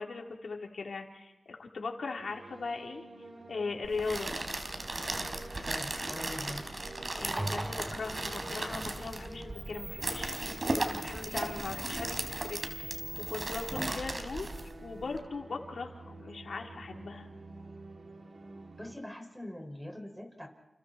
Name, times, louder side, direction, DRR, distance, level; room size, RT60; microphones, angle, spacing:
voice 1, 0.0-3.0 3.5-4.3 7.1-13.0 13.3-14.5 14.8-17.3, left 4 dB, 80° left, 2 dB, 3.9 m, -39 dB
sound 1, 2.2-19.0, right 2 dB, 60° right, 3.4 m, -50 dB
sound 2, 3.8-15.2, right 2 dB, 45° right, 3.9 m, -37 dB
voice 2, 5.6-6.6 18.8-20.5, left 1 dB, 5° right, 4 dB, 6.0 m, -43 dB
sound 3, 7.2-14.1, right 1 dB, 20° right, 3.5 m, -42 dB
30.0 x 29.0 x 4.5 m, 1.1 s
cardioid pair, 50°, 0 cm